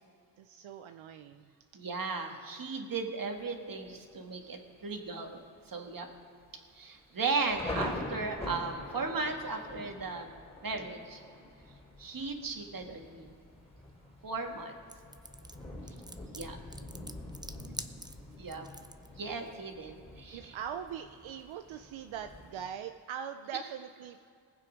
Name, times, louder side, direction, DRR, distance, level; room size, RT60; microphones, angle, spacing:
voice 1, 0.4-1.5 20.3-24.3, right 8 dB, 85° right, 7 dB, 0.6 m, -41 dB
voice 2, 1.7-6.1 6.7-11.2 12.0-13.3 14.2-14.7 16.3-16.6 18.4-18.7 19.2-20.5, right 4 dB, 45° right, 4 dB, 1.8 m, -36 dB
Thunder, 3.4-3.9 4.4-4.5 4.8-5.3 5.6-5.7 6.4-22.7, left 2 dB, 15° left, 3.5 m, -45 dB
sound 1, 14.9-19.1, right 2 dB, 10° right, 0.6 m, -45 dB
19.5 x 7.5 x 5.1 m, 2.4 s
cardioid pair, 65°, 46 cm